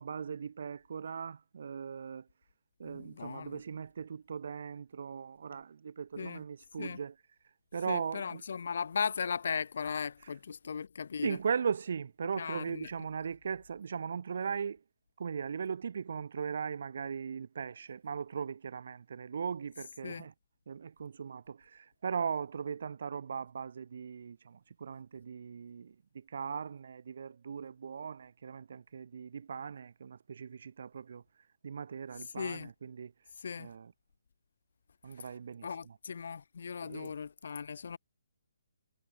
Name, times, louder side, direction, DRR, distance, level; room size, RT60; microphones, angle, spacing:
voice 1, 0.0-2.3 2.8-7.2 7.7-8.4 10.2-10.4 11.2-14.8 15.2-20.3 20.7-31.2 31.6-33.1 33.6-33.9 35.0-36.0 36.8-37.2, right 6 dB, 50° right, 2.2 m, -38 dB
voice 2, 2.8-3.6 6.2-6.4 6.8-7.0 7.9-11.4 12.4-12.9 20.0-20.3 32.4-32.7 33.4-33.7 35.2-35.3 35.6-38.0, left 6 dB, 55° left, 2.1 m, -37 dB
hypercardioid pair, 170°, 0 cm